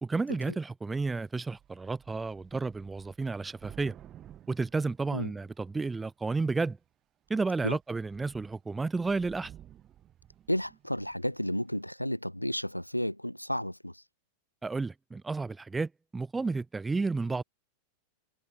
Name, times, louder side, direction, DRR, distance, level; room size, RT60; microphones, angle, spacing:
voice 1, 0.0-3.9 4.5-6.8 7.3-9.5 14.6-17.4, right 3 dB, 10° right, 0.8 m, -32 dB
Thunder / Rain, 1.2-1.3 1.5-5.7 6.4-6.8 7.3-7.4 7.7-11.4, right 11 dB, 30° right, 5.3 m, -54 dB
voice 2, 10.5-14.0, equal, 90° left, 1.2 m, -32 dB
figure-of-eight pair, 90°, 0 cm